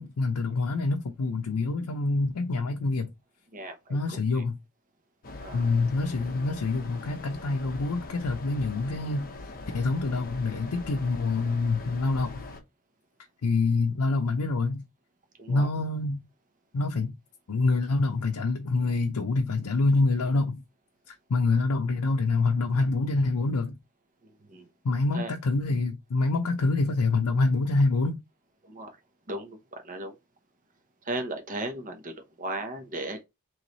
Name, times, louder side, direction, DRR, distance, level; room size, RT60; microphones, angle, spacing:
voice 1, 0.0-3.1 3.9-4.6 5.5-9.3 9.7-12.4 13.4-14.8 15.5-16.2 16.7-17.2 17.5-20.6 21.1-23.8 24.8-28.2, left 3 dB, 90° left, 0.5 m, -26 dB
voice 2, 3.5-4.5 5.4-5.7 15.4-15.7 24.2-24.7 25.1-25.4 28.6-29.0 29.3-30.2 31.0-33.2, right 2 dB, 35° right, 0.8 m, -37 dB
sound 1, 5.2-12.6, left 2 dB, 40° left, 0.7 m, -42 dB
3.1 x 3.1 x 3.9 m
head